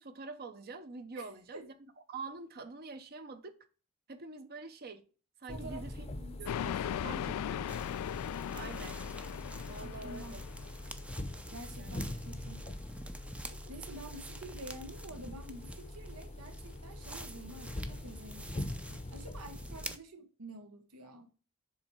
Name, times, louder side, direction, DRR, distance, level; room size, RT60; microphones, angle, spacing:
voice 1, 0.0-1.7 2.1-3.5 4.1-5.0 5.4-6.1 6.4-7.8 8.5-9.0 9.7-10.4 11.8-11.9, right 3 dB, 45° right, 0.7 m, -46 dB
voice 2, 1.2-1.7 5.5-6.4 9.8-10.4 11.5-12.6 13.7-18.6 18.9-21.3, right 2 dB, 85° right, 1.0 m, -48 dB
sound 1, 5.5-19.9, left 1 dB, 30° left, 0.7 m, -43 dB
sound 2, 6.5-11.0, left 9 dB, 85° left, 0.3 m, -38 dB
sound 3, 7.7-20.0, right 1 dB, 5° right, 0.5 m, -49 dB
7.5 x 3.3 x 4.4 m
head